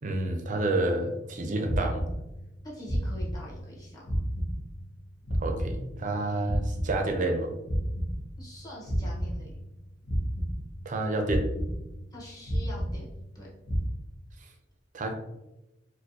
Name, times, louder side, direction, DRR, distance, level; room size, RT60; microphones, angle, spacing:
voice 1, 0.0-2.0 5.4-7.5 10.9-11.4 14.9-15.1, right 2 dB, 40° right, 4 dB, 0.5 m, -29 dB
sound 1, 1.6-2.6 2.8-3.8 4.0-6.2 6.4-8.6 8.8-9.8 10.0-11.0 11.2-12.2 12.4-13.4 13.6-13.9, equal, 75° left, 0.9 m, -31 dB
voice 2, 2.6-4.0 8.4-9.6 12.1-13.5, left 1 dB, 20° left, -4 dB, 0.9 m, -45 dB
4.3 x 2.2 x 2.6 m, 0.95 s
head